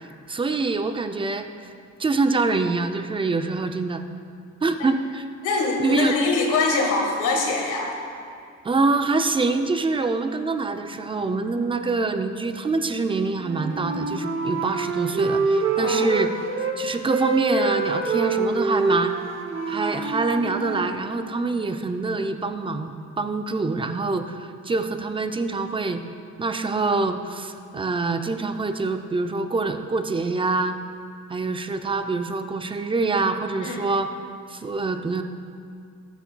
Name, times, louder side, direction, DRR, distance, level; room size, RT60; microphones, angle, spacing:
voice 1, 0.3-1.5 2.0-4.0 4.6-5.2 5.8-6.1 8.6-16.3 16.8-19.1 19.7-26.0 26.4-30.8 31.3-34.1 34.5-35.2, right 3 dB, 15° right, 8 dB, 0.4 m, -25 dB
voice 2, 5.4-7.9 15.8-16.1 33.6-33.9, left 3 dB, 90° left, 1 dB, 1.4 m, -24 dB
Wind instrument woodwind instrument, 13.4-16.8 17.1-20.9, right 3 dB, 45° right, 0.9 m, -26 dB
13.0 x 6.9 x 2.2 m, 2.3 s
cardioid pair, 90°, 30 cm